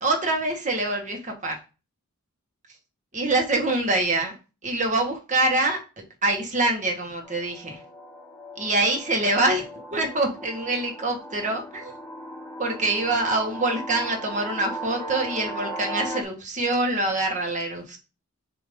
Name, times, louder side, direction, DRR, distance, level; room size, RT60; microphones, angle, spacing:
voice 1, 0.0-1.6 3.1-4.4 4.6-5.8 6.2-7.8 8.6-12.0 12.6-18.0, right 2 dB, 35° right, 2 dB, 1.5 m, -25 dB
sound 1, 7.2-16.2, right 1 dB, 5° left, 1.6 m, -37 dB
7.0 x 3.0 x 5.2 m, 0.32 s
head